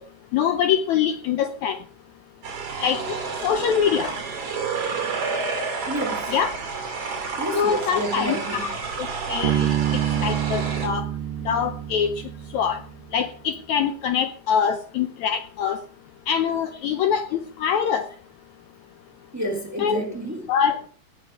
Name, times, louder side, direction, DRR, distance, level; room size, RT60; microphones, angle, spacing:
voice 1, 0.3-1.8 2.8-3.2 3.4-4.1 6.3-6.5 7.5-8.7 9.0-9.7 10.2-11.1 11.5-12.1 12.5-12.8 13.1-15.8 16.3-18.1 19.8-20.0 20.5-20.9, left 8 dB, 70° left, 1.9 m, -24 dB
sound 1, 2.4-10.9, right 5 dB, 45° right, 3.6 m, -30 dB
voice 2, 5.9-6.3 7.4-8.8 19.3-20.5, right 1 dB, 5° right, 1.8 m, -30 dB
Bass guitar, 9.4-13.0, right 11 dB, 80° right, 2.5 m, -27 dB
18.5 x 7.2 x 4.7 m
omnidirectional pair, 3.9 m